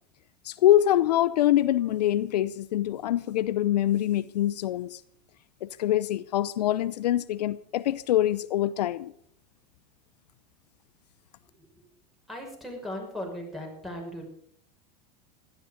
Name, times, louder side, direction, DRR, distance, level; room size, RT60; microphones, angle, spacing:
voice 1, 0.4-5.0 5.6-9.1, left 13 dB, 75° left, 0.6 m, -24 dB
voice 2, 12.3-14.2, left 1 dB, ahead, 5.7 m, -38 dB
16.0 x 13.0 x 5.1 m
hypercardioid pair, 95°, 21 cm